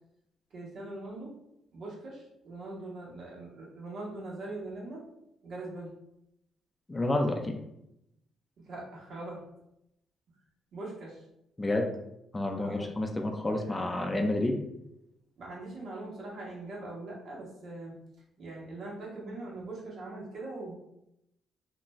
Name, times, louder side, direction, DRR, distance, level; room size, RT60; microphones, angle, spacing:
voice 1, 0.5-1.3 1.7-5.0 5.4-5.9 8.6-9.4 10.7-11.2 12.6-12.9 13.6-14.2 15.4-17.9 18.4-20.7, right 2 dB, 65° right, -4 dB, 1.1 m, -42 dB
voice 2, 6.9-7.6 11.6-11.9 12.3-14.6, left 1 dB, 20° left, 3 dB, 0.4 m, -29 dB
2.4 x 2.2 x 3.0 m, 0.82 s
cardioid pair, 90°, 0 cm